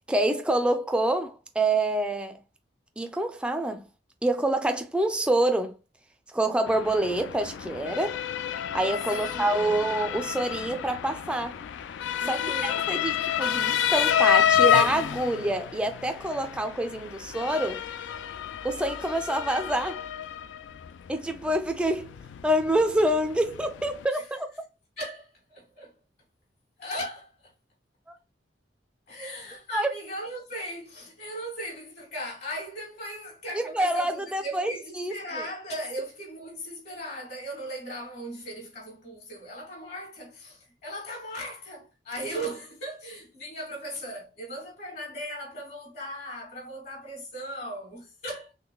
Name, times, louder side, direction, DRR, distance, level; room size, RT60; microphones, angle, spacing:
voice 1, 0.1-2.4 3.0-3.9 4.2-5.8 6.3-8.2 8.7-11.6 12.3-17.8 18.6-20.1 21.1-22.1 22.4-24.5 28.1-28.2 29.7-29.9 33.5-35.4, right 1 dB, 5° right, 0.4 m, -27 dB
Motor vehicle (road) / Siren, 6.7-24.0, left 9 dB, 80° left, 0.3 m, -29 dB
voice 2, 9.1-9.8 12.2-12.9 24.1-24.2 25.0-25.9 26.8-27.3 29.1-48.5, equal, 60° left, 1.7 m, -38 dB
3.7 x 3.3 x 2.2 m
head